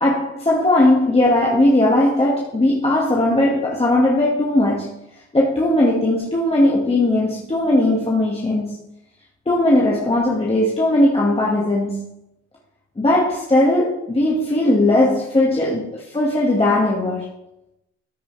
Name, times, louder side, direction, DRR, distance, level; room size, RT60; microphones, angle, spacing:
voice 1, 0.0-5.0 5.3-8.9 9.5-12.2 13.0-17.3, left 1 dB, 20° left, -4 dB, 1.9 m, -18 dB
13.5 x 6.0 x 3.4 m, 0.85 s
cardioid pair, 90°, 30 cm